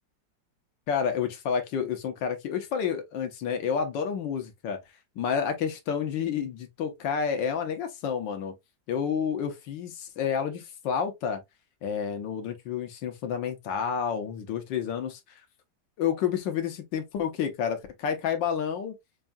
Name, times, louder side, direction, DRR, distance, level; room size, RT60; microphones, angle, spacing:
voice 1, 0.9-4.8 5.2-8.5 8.9-11.4 11.8-15.4 16.0-19.0, left 7 dB, 90° left, 1.6 m, -30 dB
5.9 x 2.7 x 2.2 m
omnidirectional pair, 2.0 m